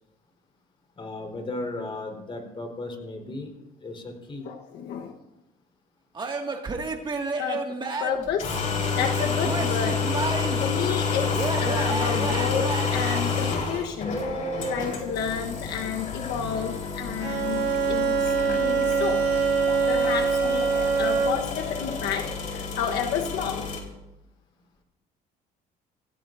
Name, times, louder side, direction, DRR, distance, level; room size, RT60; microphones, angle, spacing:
voice 1, 1.0-3.5 3.8-4.5, left 2 dB, 30° left, 3 dB, 4.2 m, -35 dB
voice 2, 4.4-5.2 7.4-8.6 8.9-10.3 10.6-14.4 14.7-19.4 19.9-23.7, left 7 dB, 80° left, 3 dB, 1.2 m, -31 dB
Male speech man speaking / Yell / Laughter, 6.1-8.3 9.0-10.7 11.3-13.2, right 3 dB, 25° right, 2.1 m, -31 dB
sound 1, 8.2-23.8, left 5 dB, 50° left, 4.6 m, -29 dB
Bowed string instrument, 17.2-21.6, right 5 dB, 85° right, 1.3 m, -24 dB
26.0 x 17.0 x 2.7 m, 0.94 s
cardioid pair, 110°, 17 cm